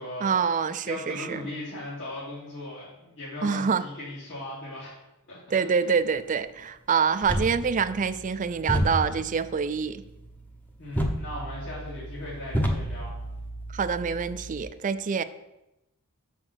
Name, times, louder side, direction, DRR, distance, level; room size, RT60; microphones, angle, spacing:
voice 1, 0.2-1.4 3.4-3.8 5.5-10.0 13.7-15.2, right 6 dB, 35° right, 0.4 m, -26 dB
voice 2, 0.8-4.9 5.3-5.9 10.8-13.1, left 1 dB, 55° left, 2.6 m, -38 dB
sound 1, 7.2-14.6, equal, 10° left, 0.8 m, -32 dB
6.4 x 5.9 x 6.2 m
head